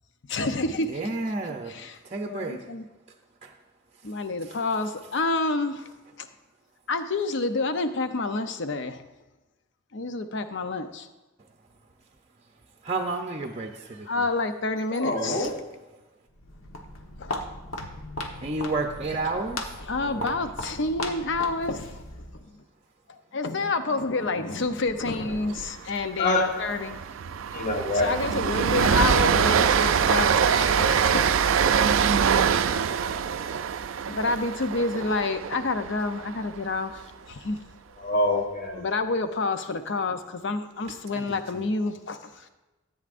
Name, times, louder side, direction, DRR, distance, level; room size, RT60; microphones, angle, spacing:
voice 1, 0.3-1.0 1.5-2.9 4.0-5.9 6.2-6.3 6.9-9.0 9.9-11.1 14.1-15.5 17.2-17.3 17.7-18.0 19.2-19.3 19.8-22.0 22.5-22.6 23.1-27.0 27.9-32.3 34.1-37.6 38.8-42.5, left 3 dB, 60° left, 9 dB, 0.6 m, -29 dB
voice 2, 0.9-1.7 2.0-2.6 3.4-3.5 12.8-14.1 15.4-15.5 18.4-19.6 20.0-20.4 25.4-25.6 32.7-32.8 41.1-41.4, right 3 dB, 30° right, 3 dB, 0.6 m, -31 dB
voice 3, 14.9-15.5 26.2-26.4 27.5-28.1 38.0-38.8, left 2 dB, 40° left, 1 dB, 1.3 m, -25 dB
Walk footsteps, 16.3-22.4, left 1 dB, 75° left, 1.1 m, -37 dB
Train, 25.3-25.6 25.9-26.1 26.4-36.6, right 7 dB, 70° right, 0.4 m, -24 dB
14.0 x 8.6 x 2.5 m, 1.1 s
head